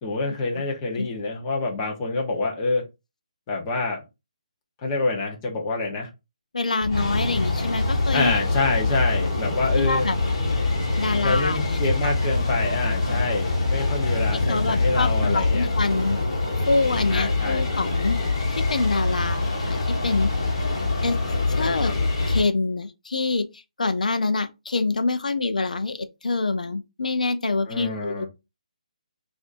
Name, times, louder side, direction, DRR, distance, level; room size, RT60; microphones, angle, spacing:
voice 1, 0.0-2.8 3.5-4.0 4.8-6.1 8.1-10.1 11.0-15.7 17.1-17.7 21.5-21.9 27.7-28.3, left 3 dB, 20° left, 1.0 m, -27 dB
voice 2, 6.5-8.3 9.7-10.2 11.0-12.1 14.5-16.2 16.6-18.2 18.5-19.8 20.0-20.3 21.0-21.2 21.5-21.9 22.3-28.3, left 3 dB, 85° left, 0.6 m, -26 dB
sound 1, 6.8-22.4, left 3 dB, 35° left, 1.7 m, -24 dB
5.8 x 2.7 x 2.5 m
hypercardioid pair, 170°, 4 cm